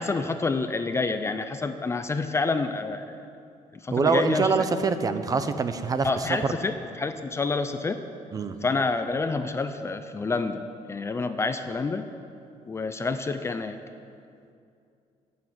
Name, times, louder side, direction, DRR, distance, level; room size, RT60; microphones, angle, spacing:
voice 1, 0.0-3.2 3.8-4.7 6.0-8.0 8.6-12.1 12.7-13.8, left 3 dB, 20° left, 9 dB, 0.5 m, -28 dB
voice 2, 3.9-6.6 8.3-8.6, right 4 dB, 25° right, 10 dB, 0.7 m, -25 dB
13.0 x 8.5 x 9.5 m, 2.5 s
cardioid pair, 165°, 13 cm